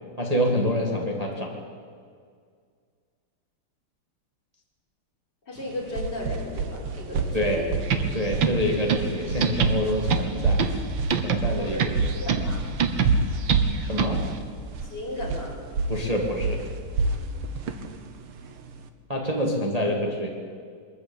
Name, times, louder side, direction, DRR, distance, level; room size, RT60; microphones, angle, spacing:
voice 1, 0.2-1.5 7.3-7.7 8.1-10.6 11.2-11.8 13.8-14.2 15.9-16.6 19.1-20.3, equal, 15° right, 0 dB, 2.2 m, -26 dB
voice 2, 5.5-7.8 11.6-11.8 12.2-12.6 14.9-15.5, left 1 dB, 50° left, -3 dB, 5.9 m, -35 dB
sound 1, 5.6-18.9, right 3 dB, 85° right, 2.2 m, -28 dB
sound 2, 7.8-14.4, right 6 dB, 65° right, 2.0 m, -27 dB
23.0 x 14.0 x 9.0 m, 2.1 s
omnidirectional pair, 2.3 m